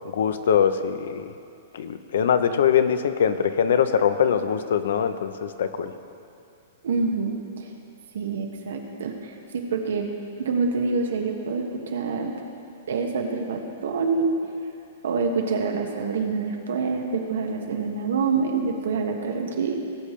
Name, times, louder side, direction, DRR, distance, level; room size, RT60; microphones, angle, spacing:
voice 1, 0.0-1.3 1.7-5.9, left 8 dB, 70° left, 10 dB, 0.7 m, -22 dB
voice 2, 6.8-7.7 8.1-10.1 10.4-12.3 12.9-14.3 15.0-19.7, right 4 dB, 85° right, 2 dB, 1.6 m, -26 dB
18.5 x 8.5 x 3.3 m, 2.5 s
hypercardioid pair, 170°, 0 cm